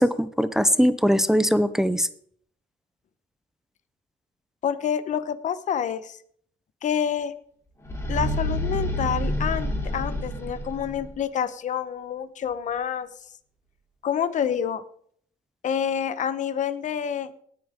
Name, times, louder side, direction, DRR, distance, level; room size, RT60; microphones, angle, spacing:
voice 1, 0.0-2.1, equal, 5° right, 13 dB, 0.6 m, -21 dB
voice 2, 4.6-6.2 6.8-7.3 8.1-13.1 14.0-14.8 15.6-17.3, left 8 dB, 45° left, 13 dB, 1.0 m, -28 dB
sound 1, 7.8-11.1, equal, 15° left, 3.2 m, -28 dB
18.5 x 8.7 x 3.7 m, 0.62 s
cardioid pair, 110°, 17 cm